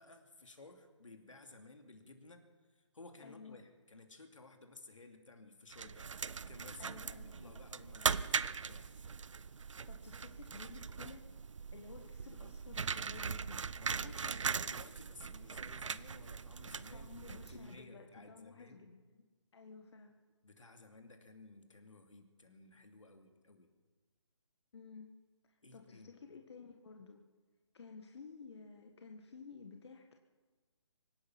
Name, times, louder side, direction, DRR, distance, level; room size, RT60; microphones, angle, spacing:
voice 1, 0.0-2.5 2.7-8.9 13.8-18.9 20.4-23.7 25.6-26.1, left 2 dB, 80° left, 6 dB, 2.6 m, -56 dB
voice 2, 3.2-3.6 6.8-7.5 9.9-11.2 11.7-13.6 16.9-19.2 19.5-20.1 24.7-25.1 25.7-27.2 27.7-30.1, left 5 dB, 55° left, 3 dB, 1.6 m, -53 dB
sound 1, 5.7-17.8, right 5 dB, 75° right, 0.6 m, -40 dB
25.0 x 9.9 x 5.9 m, 1.4 s
figure-of-eight pair, 150°, 16 cm